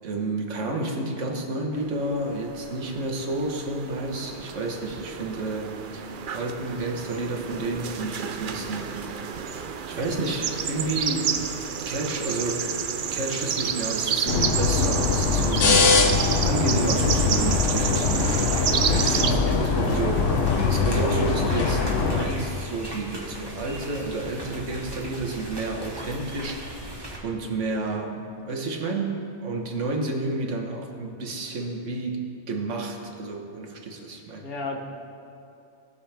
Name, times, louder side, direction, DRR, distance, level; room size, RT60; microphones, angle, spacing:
voice 1, 0.0-8.9 9.9-11.5 11.8-12.8 13.1-18.4 18.8-26.9 27.2-34.6, right 2 dB, 80° right, 1 dB, 1.5 m, -30 dB
sound 1, 1.8-19.3, right 7 dB, 55° right, 0.6 m, -30 dB
sound 2, 14.3-22.2, left 4 dB, 80° left, 1.1 m, -22 dB
sound 3, 16.7-27.2, right 1 dB, 20° right, 1.4 m, -38 dB
voice 2, 19.2-19.5 34.4-34.8, left 3 dB, 55° left, 1 dB, 1.3 m, -32 dB
18.5 x 6.9 x 3.4 m, 2.7 s
omnidirectional pair, 1.2 m